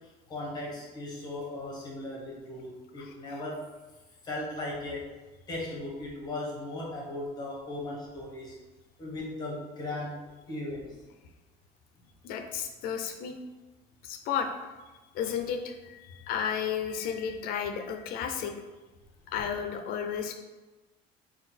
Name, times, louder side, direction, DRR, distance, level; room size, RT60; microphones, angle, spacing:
voice 1, 0.3-3.6 4.2-5.1 5.5-8.5 9.0-10.2 10.5-10.9, left 2 dB, 25° left, -3 dB, 0.9 m, -37 dB
voice 2, 12.2-13.3 14.0-14.5 15.1-18.5 19.3-20.3, left 7 dB, 60° left, 6 dB, 0.4 m, -33 dB
3.9 x 2.3 x 4.1 m, 1.2 s
cardioid pair, 165°, 17 cm